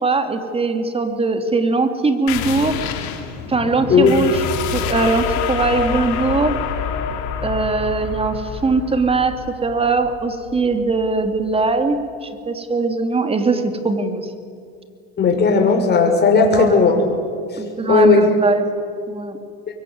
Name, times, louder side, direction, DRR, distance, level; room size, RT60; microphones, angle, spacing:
voice 1, 0.0-2.8 3.5-4.3 4.7-6.6 7.4-14.3 16.5-16.7 17.6-18.7 19.1-19.4, right 3 dB, 20° right, 7 dB, 2.9 m, -20 dB
sound 1, 2.3-11.5, left 8 dB, 70° left, 3.5 m, -27 dB
voice 2, 15.2-17.0 17.5-17.6 17.9-18.3, left 4 dB, 35° left, 3 dB, 6.0 m, -14 dB
24.5 x 23.0 x 9.7 m, 2.3 s
supercardioid pair, 110°, 30 cm